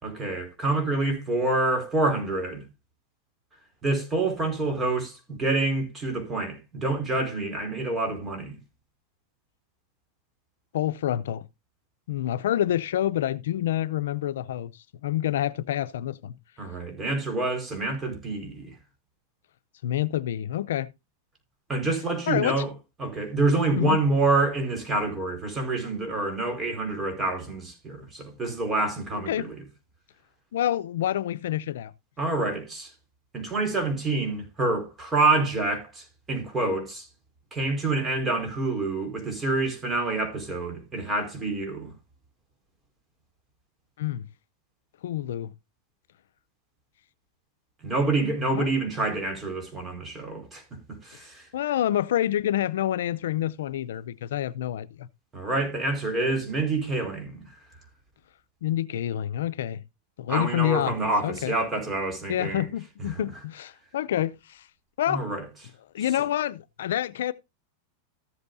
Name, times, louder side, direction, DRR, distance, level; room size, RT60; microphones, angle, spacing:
voice 1, 0.0-2.6 3.8-8.6 16.6-18.7 21.7-22.7 23.0-29.5 32.2-32.9 33.3-37.1 37.5-41.9 47.8-50.6 51.0-51.5 55.3-57.5 60.3-62.7 63.1-63.3 65.1-65.4, right 2 dB, 20° right, 4.5 m, -27 dB
voice 2, 10.7-11.5 12.1-14.7 15.0-16.4 19.8-20.9 22.3-22.6 23.7-24.0 29.1-29.5 30.5-31.9 44.0-44.3 45.0-45.5 48.5-48.7 51.5-55.1 58.6-59.8 60.2-61.0 61.2-61.5 62.3-64.6 65.0-65.3 65.9-67.3, left 12 dB, 80° left, 0.5 m, -27 dB
14.0 x 7.9 x 2.6 m
supercardioid pair, 130°, 0 cm